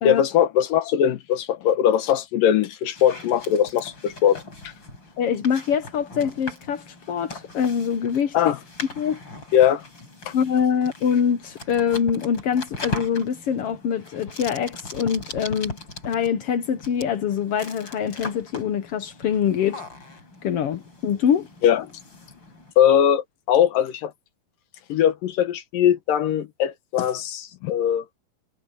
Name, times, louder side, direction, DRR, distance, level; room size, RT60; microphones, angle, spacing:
voice 1, 0.0-4.4 8.3-8.6 9.5-9.9 10.3-10.4 21.6-21.8 22.8-24.1 24.9-28.1, left 10 dB, 70° left, 2.7 m, -20 dB
sound 1, 2.9-22.7, left 2 dB, 30° left, 6.6 m, -40 dB
voice 2, 5.2-8.5 9.0-9.2 10.3-15.8 16.0-19.8 20.4-21.5, left 8 dB, 85° left, 1.3 m, -24 dB
omnidirectional pair, 4.3 m